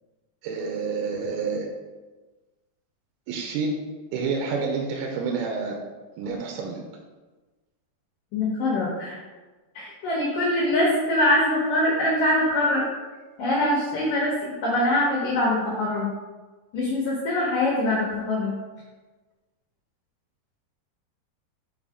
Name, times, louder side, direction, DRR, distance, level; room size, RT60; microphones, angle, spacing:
voice 1, 0.4-1.7 3.3-3.8 4.1-5.8 6.2-6.8, right 4 dB, 80° right, 1 dB, 2.5 m, -28 dB
voice 2, 8.3-9.2 9.7-12.8 13.4-16.1 16.7-18.5, left 1 dB, 70° left, -4 dB, 2.2 m, -23 dB
5.8 x 3.9 x 4.8 m, 1.2 s
omnidirectional pair, 4.9 m